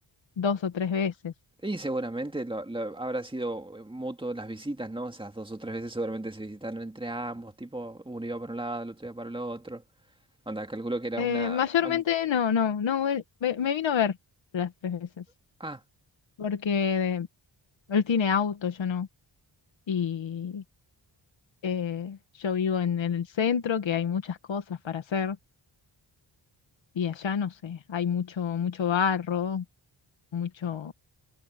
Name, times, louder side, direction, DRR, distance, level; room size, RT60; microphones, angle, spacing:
voice 1, 0.4-1.3 11.2-14.1 14.5-15.2 16.4-17.3 17.9-19.1 19.9-20.6 21.6-25.4 26.9-29.6 30.3-30.9, left 7 dB, 80° left, 1.5 m, -28 dB
voice 2, 1.6-9.8 10.5-12.0 15.6-15.8, right 1 dB, 10° right, 2.1 m, -34 dB
wide cardioid pair, 165°, 45 cm